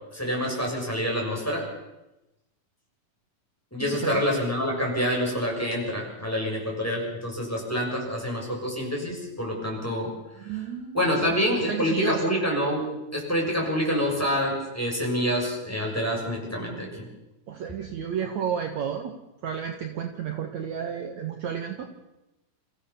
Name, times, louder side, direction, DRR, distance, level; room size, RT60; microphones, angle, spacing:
voice 1, 0.1-1.7 3.7-10.1 10.9-12.9 13.1-17.1, equal, 5° left, -2 dB, 6.6 m, -27 dB
voice 2, 3.8-4.2 10.4-12.4 17.5-19.2 19.4-21.9, right 7 dB, 60° right, 4 dB, 2.5 m, -32 dB
29.0 x 15.5 x 7.1 m, 0.97 s
omnidirectional pair, 4.0 m